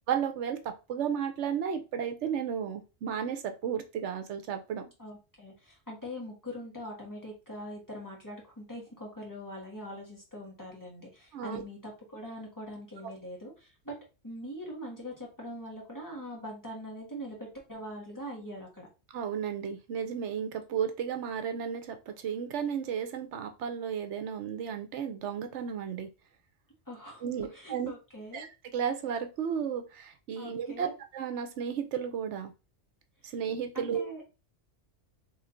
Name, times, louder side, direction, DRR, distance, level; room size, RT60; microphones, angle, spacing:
voice 1, 0.1-4.8 11.3-11.6 13.0-13.1 19.1-26.1 27.2-27.9 28.3-28.5 28.7-30.9 31.1-32.5 33.3-34.1, right 8 dB, 80° right, 8 dB, 1.0 m, -33 dB
voice 2, 5.0-13.9 14.2-18.9 26.9-28.4 30.4-31.0 33.3-33.4 33.7-34.2, equal, 15° left, -3 dB, 1.6 m, -42 dB
3.6 x 3.2 x 3.7 m, 0.29 s
omnidirectional pair, 1.2 m